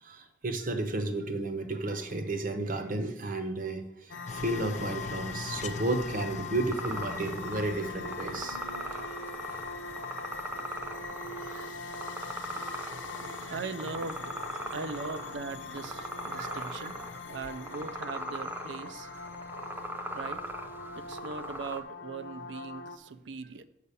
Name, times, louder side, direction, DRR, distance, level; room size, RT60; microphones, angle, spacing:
voice 1, 0.0-8.9 11.5-11.6 12.7-13.7 14.7-14.9 16.3-16.9, right 2 dB, 45° right, 8 dB, 0.9 m, -33 dB
sound 1, 4.1-23.0, left 4 dB, 75° left, 0.8 m, -42 dB
sound 2, 4.3-17.5, left 4 dB, 40° left, 0.4 m, -46 dB
sound 3, 6.7-21.8, right 1 dB, 10° right, 0.6 m, -40 dB
voice 2, 13.5-14.3 14.7-16.9 17.3-19.1 20.1-20.6 21.0-23.6, right 4 dB, 70° right, 13 dB, 0.5 m, -39 dB
6.7 x 5.6 x 6.8 m, 0.82 s
head